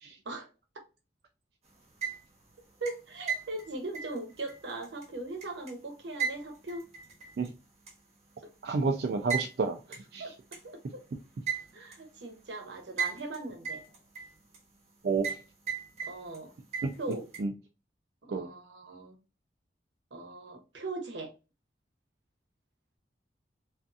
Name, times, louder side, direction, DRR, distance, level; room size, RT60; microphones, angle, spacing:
sound 1, 1.8-2.5 2.9-5.7 6.2-7.5 7.9-8.0 9.3-9.5 9.9-10.0 10.5-10.6 11.5-12.0 13.0-13.4 13.6-14.6 15.2-15.4 15.7-16.4 16.7-17.4, right 6 dB, 35° right, 0.9 m, -35 dB
voice 1, 2.8-6.8 10.2-10.3 10.6-11.0 11.7-13.8 16.1-16.5 17.0-17.2 18.2-19.2 20.1-21.3, right 2 dB, 80° right, 0.7 m, -39 dB
voice 2, 8.6-10.2 15.0-15.4 16.8-16.9 17.4-17.5 18.3-18.5, right 4 dB, 60° right, 0.3 m, -30 dB
2.6 x 2.4 x 2.4 m
head